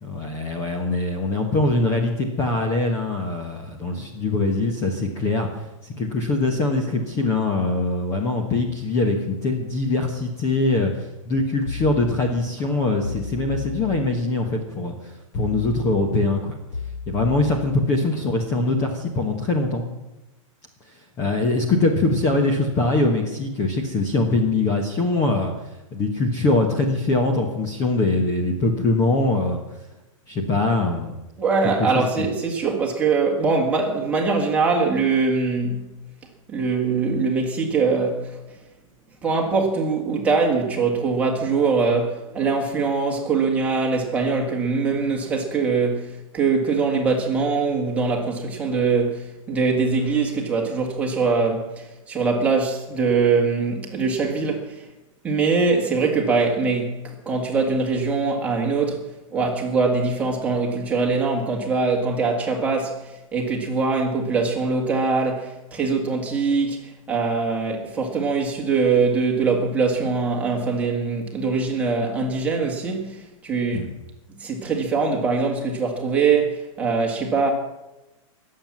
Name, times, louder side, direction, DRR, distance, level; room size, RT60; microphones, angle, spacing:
voice 1, 0.0-5.5 5.8-16.6 17.1-19.8 21.2-25.5 25.9-29.6 30.3-31.1 31.6-31.9 32.2-32.3 73.7-73.9, left 2 dB, 15° left, 1.2 m, -22 dB
sound 1, 11.7-12.6 13.0-14.5 15.3-16.3 16.7-18.2 18.6-19.0, left 5 dB, 55° left, 3.9 m, -34 dB
voice 2, 31.4-35.9 36.5-38.4 39.2-54.8 55.2-59.0 59.3-73.9 74.4-77.5, right 4 dB, 10° right, 1.9 m, -22 dB
20.0 x 7.7 x 7.4 m
hypercardioid pair, 170°, 17 cm